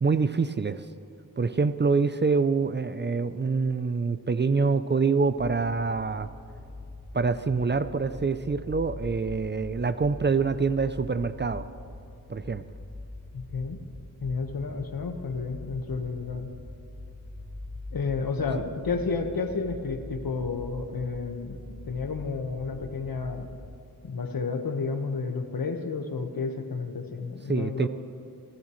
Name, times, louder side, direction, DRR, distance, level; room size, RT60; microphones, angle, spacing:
voice 1, 0.0-0.8 1.4-6.3 7.1-11.7 12.3-12.6 27.5-27.9, right 4 dB, 30° right, 12 dB, 0.5 m, -25 dB
sound 1, 5.3-23.7, left 2 dB, 50° left, 3.5 m, -43 dB
voice 2, 13.3-13.8 14.2-16.5 17.9-21.6 21.9-23.5 24.0-27.9, left 4 dB, 75° left, 5 dB, 1.4 m, -31 dB
25.0 x 16.0 x 3.2 m, 2.8 s
wide cardioid pair, 85°, 36 cm